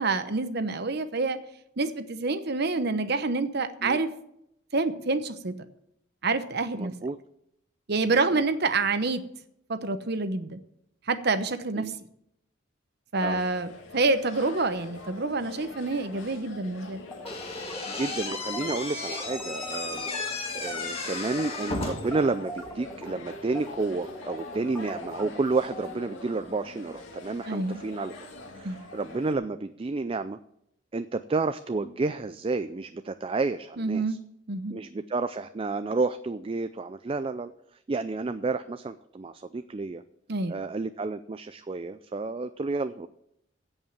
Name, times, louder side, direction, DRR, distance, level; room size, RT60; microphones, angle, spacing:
voice 1, 0.0-1.4 1.8-4.1 4.7-5.5 6.2-6.9 7.9-9.2 9.7-10.6 11.1-11.9 13.1-17.1 27.5-27.8 28.6-28.8 33.8-34.2 34.5-34.8 40.3-40.6, right 3 dB, 55° right, 11 dB, 0.9 m, -27 dB
voice 2, 6.8-7.2 8.3-8.4 11.8-11.9 13.2-13.4 17.9-28.1 28.5-30.4 30.9-34.2 34.7-37.5 37.9-40.0 40.5-43.1, right 3 dB, 30° right, 11 dB, 0.4 m, -31 dB
sound 1, 13.1-29.3, left 2 dB, 75° left, 2.1 m, -45 dB
sound 2, 17.1-20.3 20.6-20.9 21.1-26.0, left 1 dB, 5° left, 1.7 m, -41 dB
Slam / Squeak, 17.3-22.2, left 3 dB, 30° left, 2.0 m, -34 dB
16.0 x 5.5 x 7.2 m, 0.77 s
head